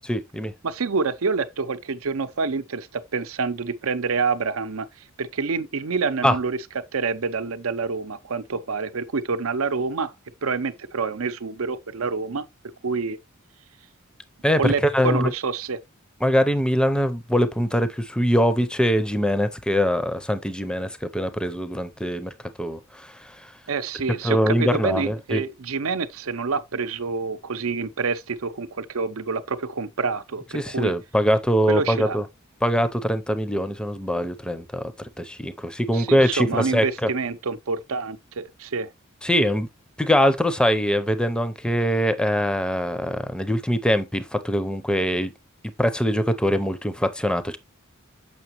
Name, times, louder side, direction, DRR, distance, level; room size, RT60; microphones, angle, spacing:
voice 1, 0.1-0.5 6.2-6.3 14.4-15.3 16.2-22.3 22.6-23.5 24.2-25.4 30.5-32.2 32.6-37.1 39.2-39.7 40.0-45.3 45.8-47.6, equal, 5° left, 0.6 m, -23 dB
voice 2, 0.6-4.9 5.2-10.1 10.4-12.4 12.8-13.2 14.6-15.8 23.7-30.9 31.7-32.2 35.9-38.9, right 4 dB, 75° right, 0.7 m, -27 dB
7.0 x 5.8 x 3.0 m
head